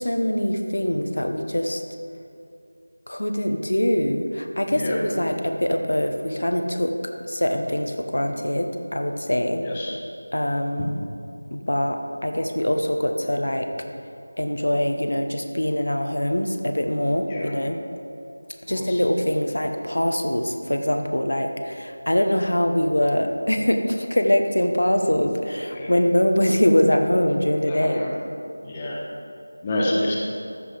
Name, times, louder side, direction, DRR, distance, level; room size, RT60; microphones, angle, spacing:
voice 1, 0.0-1.8 3.1-6.9 7.2-9.6 10.3-11.0 11.5-13.7 14.4-17.8 18.7-28.1, left 1 dB, 70° left, 5 dB, 1.0 m, -23 dB
voice 2, 9.6-9.9 17.3-17.5 18.7-19.0 25.7-25.9 27.7-28.1 28.6-29.0 29.6-30.2, left 1 dB, 15° left, -4 dB, 0.9 m, -28 dB
13.5 x 5.5 x 5.1 m, 2.5 s
figure-of-eight pair, 170°, 0 cm